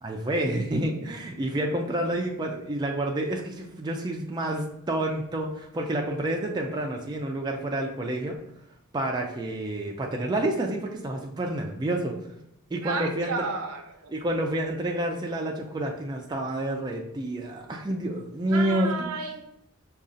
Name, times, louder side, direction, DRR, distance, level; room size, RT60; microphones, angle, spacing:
voice 1, 0.0-8.4 8.9-12.1 12.7-13.5 14.1-19.1, right 1 dB, 20° right, 1 dB, 0.3 m, -29 dB
voice 2, 12.8-14.1 18.5-19.4, right 4 dB, 75° right, 5 dB, 0.6 m, -32 dB
4.9 x 2.4 x 2.6 m, 0.81 s
head